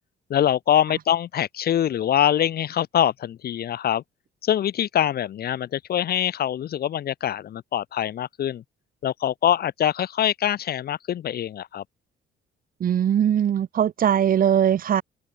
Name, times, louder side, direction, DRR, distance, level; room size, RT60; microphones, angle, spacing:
voice 1, 0.3-4.0 4.4-8.6 9.0-11.8, left 10 dB, 50° left, 0.5 m, -24 dB
voice 2, 12.8-15.0, right 9 dB, 45° right, 0.5 m, -20 dB
open air
cardioid pair, 90°, 20 cm